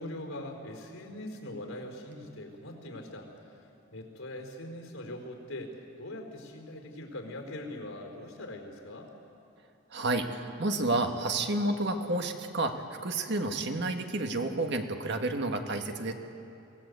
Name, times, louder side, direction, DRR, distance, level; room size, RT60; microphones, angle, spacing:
voice 1, 0.0-9.1, left 1 dB, 85° left, 2 dB, 4.4 m, -42 dB
voice 2, 9.9-16.1, right 2 dB, 55° right, 5 dB, 1.6 m, -30 dB
24.0 x 18.0 x 8.2 m, 2.6 s
head